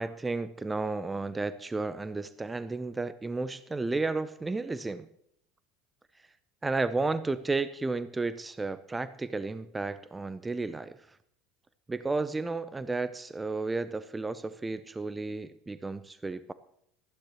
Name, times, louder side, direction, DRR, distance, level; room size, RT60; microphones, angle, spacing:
voice 1, 0.0-5.1 6.6-11.2 11.9-16.5, right 3 dB, 15° right, 14 dB, 0.7 m, -32 dB
19.0 x 14.0 x 3.1 m, 0.73 s
figure-of-eight pair, 70°, 0 cm